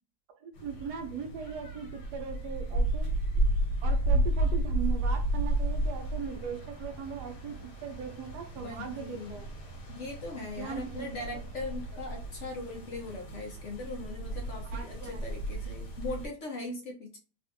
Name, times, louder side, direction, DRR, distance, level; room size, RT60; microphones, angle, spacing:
voice 1, 0.4-3.1 3.3-3.4 3.8-7.6 7.8-9.5 10.6-11.3 14.7-15.4, right 7 dB, 75° right, 5 dB, 1.2 m, -39 dB
sound 1, 0.5-16.3, right 1 dB, 75° left, 1.6 m, -32 dB
voice 2, 8.6-9.3 9.9-17.2, left 2 dB, 60° left, 1 dB, 0.9 m, -40 dB
3.4 x 2.4 x 2.5 m, 0.35 s
omnidirectional pair, 1.8 m